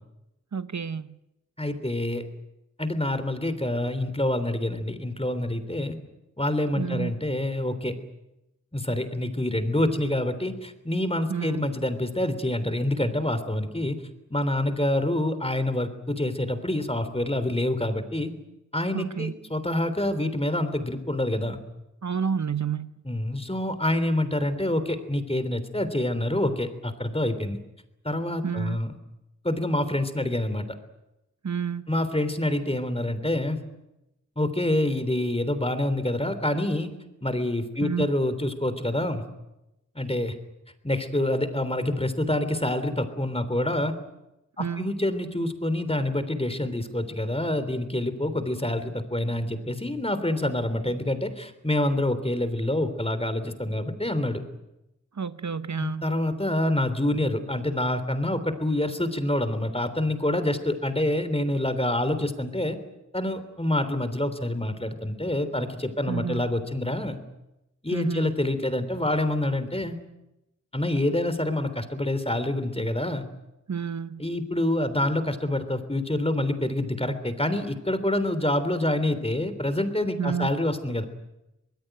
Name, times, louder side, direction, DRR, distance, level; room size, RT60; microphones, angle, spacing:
voice 1, 0.5-1.2 6.8-7.1 11.3-11.7 18.9-19.3 22.0-23.0 28.4-28.8 31.4-31.9 37.8-38.1 44.6-44.9 55.1-56.0 66.1-66.5 67.9-68.3 73.7-74.2 80.2-80.5, right 6 dB, 65° right, 0.8 m, -30 dB
voice 2, 1.6-2.3 2.8-6.0 6.4-7.9 8.7-14.0 14.3-18.3 18.7-21.6 23.1-27.6 28.0-28.9 29.4-30.6 31.9-33.6 34.4-36.9 37.2-39.2 40.0-40.4 40.8-43.9 44.6-54.4 55.8-62.8 63.1-67.2 67.8-70.0 70.7-73.2 74.2-81.0, left 1 dB, 20° left, 3.3 m, -27 dB
24.5 x 20.5 x 9.2 m
wide cardioid pair, 45°, 30 cm